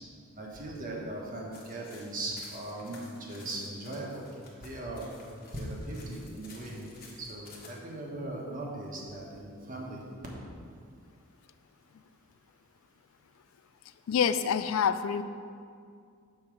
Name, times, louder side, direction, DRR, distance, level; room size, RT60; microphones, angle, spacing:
voice 1, 0.4-4.2 4.6-5.1 5.5-6.9 7.2-10.0, right 1 dB, 40° right, -2 dB, 1.3 m, -39 dB
sound 1, 1.5-7.7, left 3 dB, 45° left, 1.4 m, -53 dB
voice 2, 14.1-15.2, left 7 dB, 85° left, 12 dB, 0.3 m, -26 dB
7.0 x 4.5 x 6.2 m, 2.3 s
head